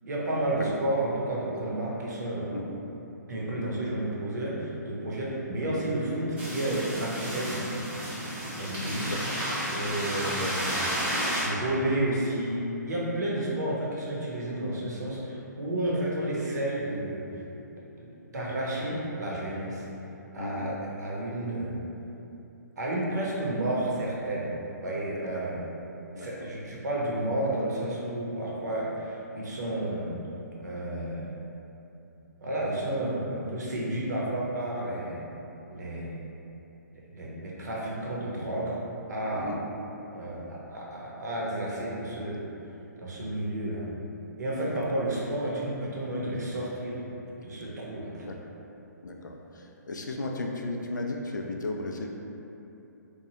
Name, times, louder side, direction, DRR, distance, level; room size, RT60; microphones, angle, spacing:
voice 1, 0.0-2.5 3.3-7.9 8.6-9.1 9.7-10.9 11.4-17.2 18.0-19.9 20.3-21.8 22.8-24.5 24.8-25.6 26.2-30.2 30.6-31.3 32.4-35.2 35.7-36.2 37.1-38.8 39.1-39.6 40.1-42.4 43.0-43.9 44.4-47.0 47.4-48.2, right 1 dB, 65° right, -5 dB, 0.7 m, -31 dB
sound 1, 6.4-11.4, equal, 15° right, 0.7 m, -32 dB
voice 2, 9.1-9.4 9.9-10.2 20.4-20.7 25.3-25.4 26.1-26.5 39.3-39.6 44.6-44.8 48.2-48.3 49.0-49.4 49.9-52.1, left 2 dB, 80° left, 1 dB, 0.4 m, -35 dB
3.0 x 2.2 x 2.7 m, 2.9 s
figure-of-eight pair, 135°, 10 cm